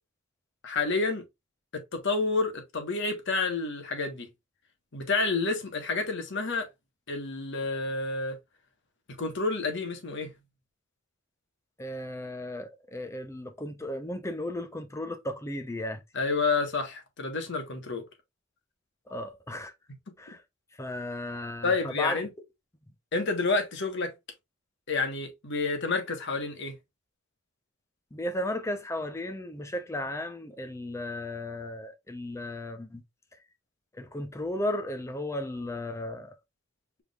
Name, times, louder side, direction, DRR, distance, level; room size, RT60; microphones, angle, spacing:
voice 1, 0.6-1.2 1.7-4.3 4.9-6.7 7.1-8.4 9.2-10.3 16.1-18.0 21.6-22.3 23.1-24.1 24.9-26.8, left 3 dB, 60° left, 1.2 m, -29 dB
voice 2, 11.8-16.0 19.1-19.7 20.2-20.4 20.8-22.2 28.1-33.0 33.9-36.3, left 1 dB, 15° left, 0.6 m, -35 dB
4.8 x 3.5 x 2.4 m
head